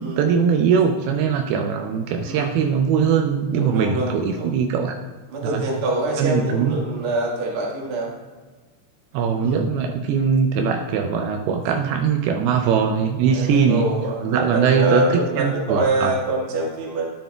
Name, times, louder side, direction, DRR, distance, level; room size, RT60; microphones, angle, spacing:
voice 1, 0.0-5.0 5.4-5.7 6.2-6.8 9.1-13.9 14.2-15.0 15.3-16.1, right 6 dB, 80° right, 4 dB, 2.4 m, -21 dB
voice 2, 3.5-4.5 5.3-8.1 9.4-9.6 13.3-17.0, right 2 dB, 50° right, -3 dB, 1.7 m, -25 dB
12.0 x 8.4 x 2.3 m, 1.3 s
omnidirectional pair, 4.7 m